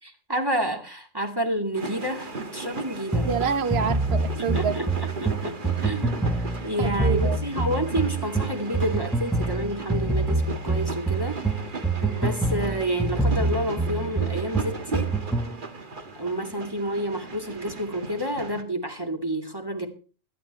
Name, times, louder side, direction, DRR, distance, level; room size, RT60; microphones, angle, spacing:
voice 1, 0.0-3.3 4.4-5.6 5.8-6.3 6.6-11.4 11.7-15.1 16.1-19.9, right 1 dB, 20° right, 4 dB, 2.5 m, -29 dB
sound 1, 1.7-18.6, right 3 dB, 40° right, 1.7 m, -37 dB
sound 2, 3.1-15.6, right 2 dB, ahead, 0.9 m, -26 dB
voice 2, 3.2-4.8 6.8-7.4, right 7 dB, 55° right, 14 dB, 1.2 m, -27 dB
17.0 x 12.0 x 4.3 m, 0.37 s
omnidirectional pair, 1.3 m